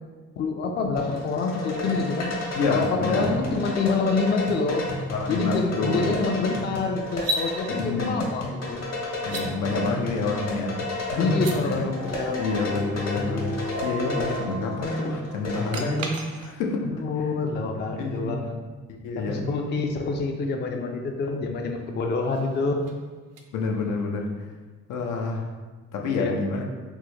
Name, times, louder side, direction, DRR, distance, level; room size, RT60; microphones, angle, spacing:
voice 1, 0.4-2.3 2.7-4.9 5.3-8.8 11.2-12.4 17.0-18.6 19.2-22.9 26.2-26.6, left 4 dB, 35° left, 3 dB, 0.4 m, -27 dB
sound 1, 1.0-15.9, left 2 dB, 60° left, 1.0 m, -32 dB
voice 2, 2.6-3.4 5.0-6.2 7.7-8.2 9.2-11.8 12.4-16.9 18.0-18.3 18.9-19.4 23.5-24.5 24.9-25.5 25.9-26.6, left 3 dB, 85° left, 1 dB, 0.5 m, -28 dB
sound 2, 7.1-7.5 9.2-9.5 11.3-11.6 15.7-16.7 19.9-20.0 22.0-24.1, right 1 dB, 55° right, 0.5 m, -34 dB
sound 3, 11.8-16.1, left 1 dB, 75° right, 0.9 m, -35 dB
3.5 x 2.1 x 3.0 m, 1.4 s
cardioid pair, 90°, 30 cm